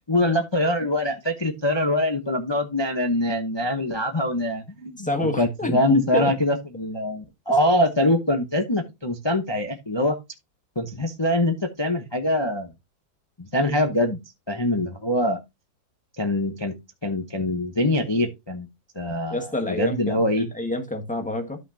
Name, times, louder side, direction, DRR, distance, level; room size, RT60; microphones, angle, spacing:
voice 1, 0.0-10.2 10.8-12.7 13.4-14.2 14.5-15.4 16.2-16.7 17.0-18.7 19.0-20.5, left 1 dB, 30° left, 0.4 m, -24 dB
voice 2, 5.0-6.3 13.6-13.9 19.3-21.6, left 1 dB, 5° left, 1.2 m, -28 dB
12.5 x 5.7 x 2.8 m
omnidirectional pair, 2.1 m